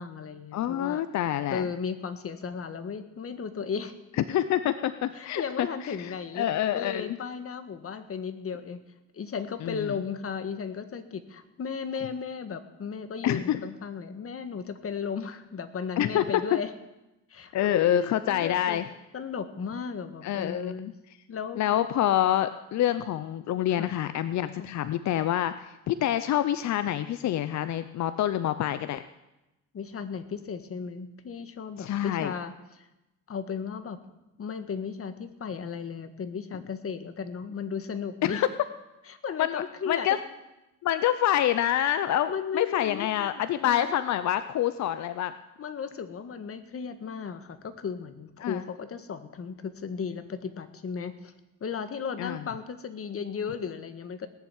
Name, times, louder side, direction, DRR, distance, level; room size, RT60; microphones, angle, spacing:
voice 1, 0.0-1.0 1.5-3.9 5.1-6.5 6.7-8.8 9.1-16.7 17.3-18.8 19.1-20.9 21.3-21.6 23.8-23.9 24.6-24.7 29.7-32.9 33.3-34.0 34.4-38.4 39.1-40.2 42.3-43.9 45.6-51.3 51.6-54.3, left 6 dB, 50° left, 10 dB, 1.7 m, -35 dB
voice 2, 0.5-1.6 4.3-7.2 9.6-9.9 13.2-13.6 16.0-16.6 17.5-18.8 20.2-20.9 21.6-29.0 31.8-32.3 38.2-38.5 39.4-40.2 40.8-45.3 48.4-48.6 52.2-52.4, left 11 dB, 65° left, 12 dB, 0.7 m, -27 dB
18.0 x 7.3 x 9.4 m, 0.97 s
cardioid pair, 90°, 30 cm